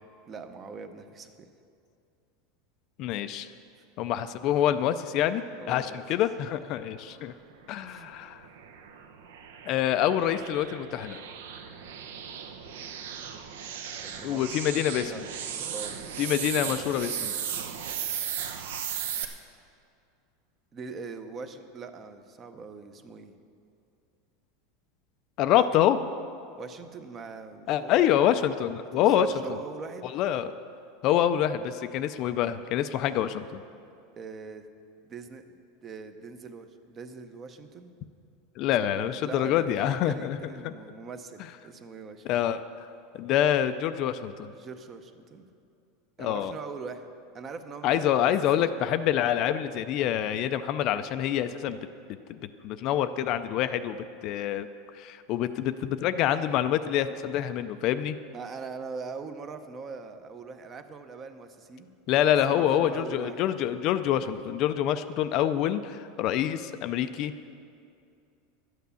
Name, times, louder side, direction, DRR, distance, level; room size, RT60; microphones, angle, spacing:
voice 1, 0.3-1.5 3.7-3.8 5.6-6.0 7.9-8.1 14.0-14.5 15.0-16.0 16.6-17.1 20.7-23.3 25.6-25.7 26.6-28.0 28.9-30.1 34.2-34.6 35.0-35.5 35.8-37.9 38.9-42.4 44.6-45.5 46.2-47.1 47.3-48.3 48.6-48.7 49.3-49.6 58.3-61.9 62.5-63.4, right 4 dB, 20° right, 9 dB, 0.6 m, -42 dB
voice 2, 3.0-3.5 4.0-7.3 7.7-8.5 9.7-11.2 14.2-15.1 16.2-17.3 25.4-26.0 27.7-29.3 30.1-30.5 31.0-33.6 38.6-40.4 40.6-40.7 42.2-42.6 43.1-44.5 46.2-46.5 47.8-51.8 52.3-54.7 54.9-58.2 62.1-67.3, left 11 dB, 35° left, 11 dB, 0.4 m, -26 dB
sound 1, 7.7-19.2, right 8 dB, 85° right, 0.9 m, -36 dB
11.5 x 9.3 x 6.9 m, 2.5 s
supercardioid pair, 170°, 0 cm